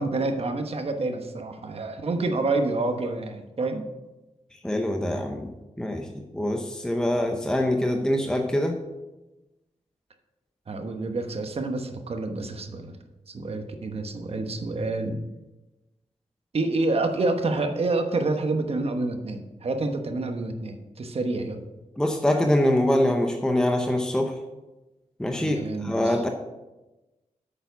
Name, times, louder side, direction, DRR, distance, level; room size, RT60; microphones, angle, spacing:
voice 1, 0.0-3.8 10.7-13.0 13.3-15.2 16.5-21.7 25.4-26.2, right 2 dB, 50° right, 5 dB, 1.1 m, -28 dB
voice 2, 4.6-5.5 5.8-8.8 22.0-24.4 25.2-26.3, left 1 dB, 5° left, 3 dB, 0.7 m, -24 dB
8.7 x 7.0 x 5.8 m, 1.0 s
wide cardioid pair, 160°, 13 cm